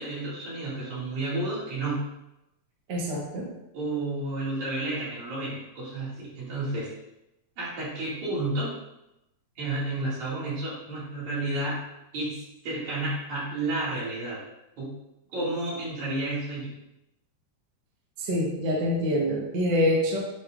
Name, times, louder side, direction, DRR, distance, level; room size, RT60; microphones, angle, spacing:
voice 1, 0.0-2.1 3.7-6.9 7.6-8.7 9.6-11.8 12.1-14.4 14.8-14.9 15.3-16.7, right 2 dB, 75° right, -8 dB, 3.8 m, -31 dB
voice 2, 2.9-3.5 18.2-20.2, left 1 dB, 50° right, -3 dB, 1.5 m, -25 dB
9.9 x 4.5 x 2.5 m, 0.89 s
omnidirectional pair, 3.3 m